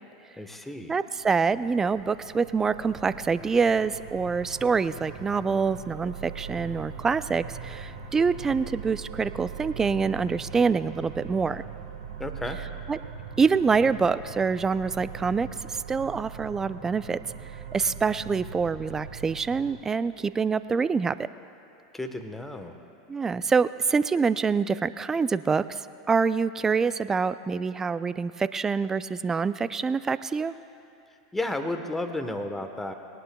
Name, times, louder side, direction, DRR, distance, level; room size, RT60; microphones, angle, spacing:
voice 1, 0.4-1.0 12.2-12.6 21.9-22.8 31.3-32.9, left 2 dB, 5° left, 6 dB, 1.1 m, -32 dB
voice 2, 0.9-11.6 12.9-13.0 13.4-17.2 17.7-21.2 23.1-25.6 26.1-30.5, right 5 dB, 20° right, 15 dB, 0.4 m, -25 dB
sound 1, 1.2-19.8, right 7 dB, 85° right, 1.6 m, -41 dB
sound 2, 18.1-20.5, right 1 dB, 30° left, 2.9 m, -50 dB
21.0 x 18.5 x 2.3 m, 2.7 s
hypercardioid pair, 105°, 3 cm